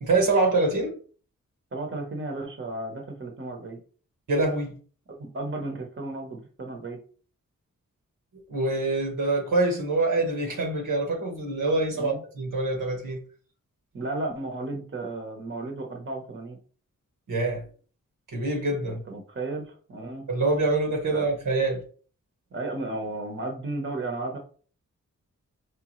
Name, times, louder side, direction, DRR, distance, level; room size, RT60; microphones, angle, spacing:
voice 1, 0.0-0.9 4.3-4.7 8.5-13.2 17.3-17.6 18.3-19.0 20.3-21.8, right 2 dB, 85° right, 1.4 m, -25 dB
voice 2, 1.7-3.8 5.1-7.0 12.0-12.2 13.9-16.6 18.9-20.3 21.1-21.3 22.5-24.4, right 2 dB, 40° right, 1.0 m, -34 dB
4.9 x 3.3 x 3.1 m
wide cardioid pair, 90°, 31 cm